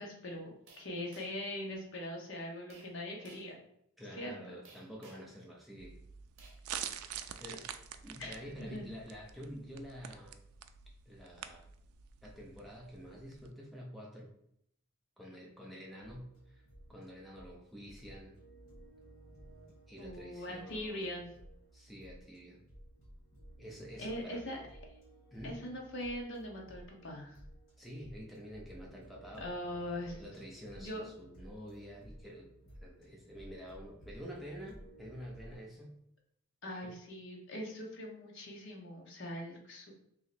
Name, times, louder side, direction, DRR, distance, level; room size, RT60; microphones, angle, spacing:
voice 1, 0.0-3.5 4.1-4.5 7.0-7.2 8.2-8.9 20.0-21.3 24.0-24.6 25.4-27.4 29.4-30.2 30.8-31.1 36.6-39.9, left 1 dB, 55° left, 0 dB, 0.9 m, -42 dB
sound 1, 0.7-1.5 2.7-2.9 3.2-3.5 4.6-5.3 6.4-7.0, right 4 dB, 60° right, 0.8 m, -58 dB
voice 2, 4.0-6.0 7.4-7.7 8.0-10.4 11.1-11.7 12.2-14.3 15.2-16.6 16.9-18.3 19.9-21.2 21.7-22.6 23.6-24.6 25.3-25.6 27.8-29.5 30.2-32.5 32.8-35.9 36.8-36.9, equal, ahead, -3 dB, 0.5 m, -48 dB
sound 2, 5.8-13.5, right 9 dB, 80° right, 0.3 m, -46 dB
sound 3, 16.0-35.6, right 1 dB, 80° left, 1.4 m, -56 dB
3.0 x 2.9 x 4.1 m, 0.73 s
head